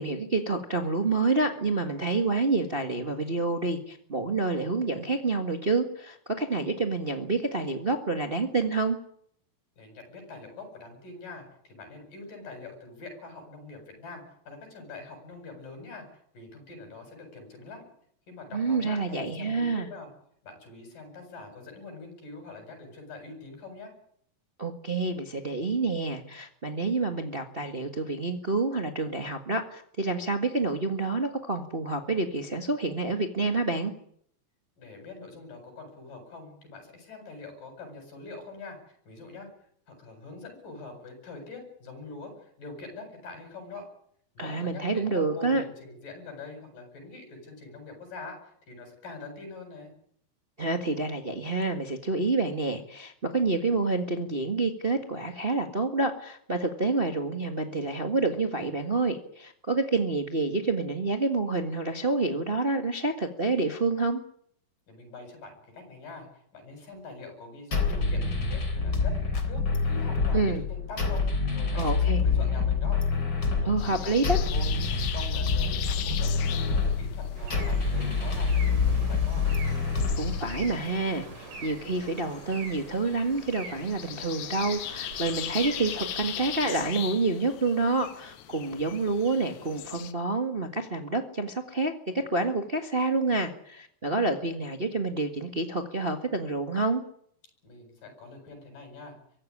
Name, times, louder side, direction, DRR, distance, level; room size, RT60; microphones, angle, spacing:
voice 1, 0.0-9.0 18.5-19.9 24.6-33.9 44.4-45.6 50.6-64.2 70.3-70.6 71.7-72.2 73.6-74.4 80.2-97.0, right 3 dB, 40° right, 5 dB, 0.7 m, -28 dB
voice 2, 9.8-16.0 16.3-17.8 18.3-20.1 20.4-23.9 34.8-39.5 39.9-43.8 44.4-49.9 64.9-66.3 66.5-69.1 69.4-73.0 73.4-74.2 74.5-79.5 97.6-99.2, left 3 dB, 65° left, 5 dB, 9.3 m, -44 dB
sound 1, 67.7-80.7, left 4 dB, 30° left, 3.8 m, -27 dB
sound 2, 73.8-90.1, left 12 dB, 85° left, 3.1 m, -40 dB
sound 3, 77.4-86.9, right 4 dB, 60° right, 4.6 m, -43 dB
23.5 x 15.5 x 9.9 m, 0.67 s
omnidirectional pair, 4.1 m